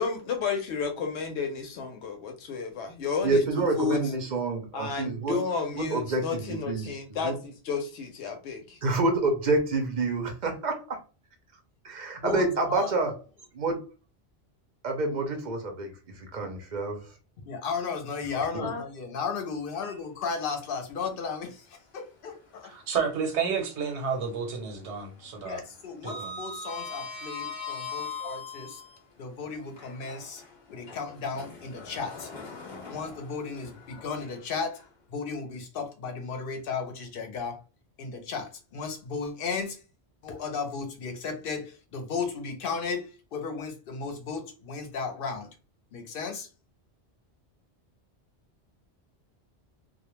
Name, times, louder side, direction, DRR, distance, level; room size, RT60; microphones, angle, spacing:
voice 1, 0.0-4.0 4.7-8.8 18.6-18.8, left 5 dB, 90° left, 0.9 m, -32 dB
voice 2, 3.2-5.4 5.8-7.3 8.8-11.0 11.8-13.2 13.5-13.8 14.8-17.1 18.3-18.5, right 2 dB, 50° right, 0.6 m, -28 dB
voice 3, 12.2-13.0 17.5-22.8 25.4-28.8 29.2-30.4 30.7-32.3 32.9-34.8 35.1-37.6 38.0-39.8 40.2-45.5 45.9-46.5, left 5 dB, 60° left, 0.7 m, -35 dB
Sliding door, 19.7-20.7 21.1-21.2 22.9-24.0 24.2-24.6 24.9-29.0 29.6-34.8, left 4 dB, 25° left, 0.8 m, -41 dB
voice 4, 22.6-25.6 26.0-26.3, right 6 dB, 85° right, 1.1 m, -31 dB
2.3 x 2.1 x 2.9 m
omnidirectional pair, 1.1 m